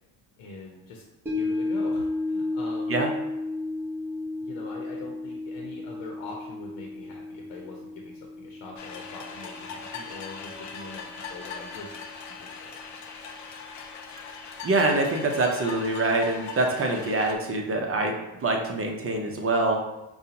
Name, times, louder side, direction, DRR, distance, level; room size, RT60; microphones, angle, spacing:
voice 1, 0.4-1.0 1.3-3.1 4.4-12.8, left 3 dB, 70° left, 0 dB, 0.9 m, -43 dB
sound 1, 1.3-11.6 12.0-12.1, left 2 dB, 5° right, 1.1 m, -33 dB
sound 2, 8.8-17.4, left 5 dB, 40° left, 0.5 m, -40 dB
voice 2, 14.6-18.1 18.4-19.8, right 2 dB, 30° right, 2 dB, 0.7 m, -25 dB
4.9 x 2.4 x 2.9 m, 0.99 s
supercardioid pair, 90°, 49 cm